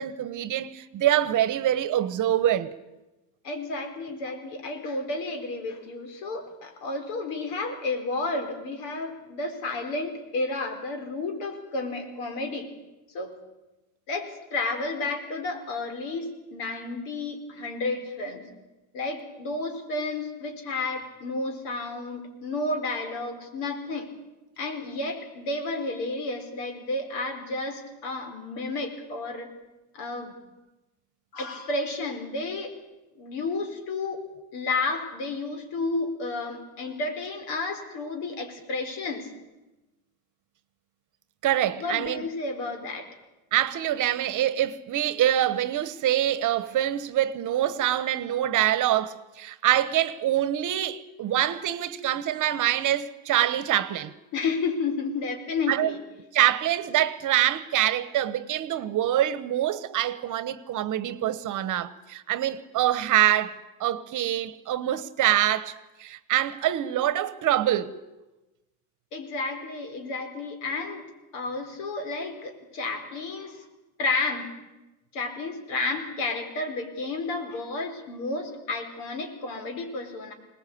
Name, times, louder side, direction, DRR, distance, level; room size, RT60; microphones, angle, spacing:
voice 1, 0.0-2.7 41.4-42.3 43.5-54.1 55.7-55.9 56.3-67.9, right 12 dB, 45° right, 1.1 m, -25 dB
voice 2, 3.4-12.7 13.1-13.3 14.1-18.5 18.9-24.1 24.6-29.5 29.9-30.4 31.3-32.7 33.1-34.2 34.5-39.3 41.7-43.1 54.3-56.0 69.1-71.1 71.3-73.7 74.0-74.5 75.1-80.3, left 3 dB, 75° left, 4.6 m, -31 dB
22.0 x 19.0 x 8.6 m
cardioid pair, 130°, 43 cm